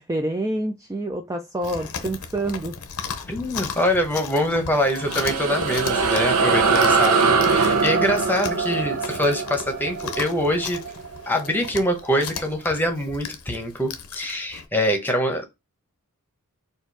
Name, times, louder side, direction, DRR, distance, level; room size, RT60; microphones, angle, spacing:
voice 1, 0.0-2.7, right 1 dB, 15° right, 0.4 m, -27 dB
Chewing mastication, 1.6-14.7, left 6 dB, 70° left, 0.7 m, -36 dB
voice 2, 3.3-10.8 11.3-15.4, equal, 10° left, 1.0 m, -24 dB
sound 1, 4.7-11.6, right 4 dB, 70° right, 0.7 m, -22 dB
4.4 x 2.5 x 4.6 m
head